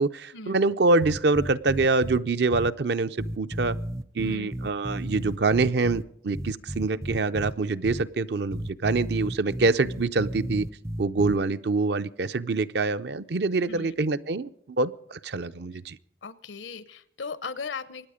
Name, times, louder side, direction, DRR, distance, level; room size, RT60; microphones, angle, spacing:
voice 1, 0.0-3.8 4.1-10.7 11.0-16.0, right 3 dB, 60° right, 12 dB, 0.6 m, -25 dB
sound 1, 1.0-2.2 2.5-2.7 3.2-6.0 6.3-7.5 7.8-8.0 8.5-11.4, right 1 dB, 15° right, 0.5 m, -33 dB
voice 2, 16.2-18.1, left 4 dB, 80° left, 16 dB, 0.9 m, -37 dB
24.5 x 9.7 x 5.0 m, 0.70 s
head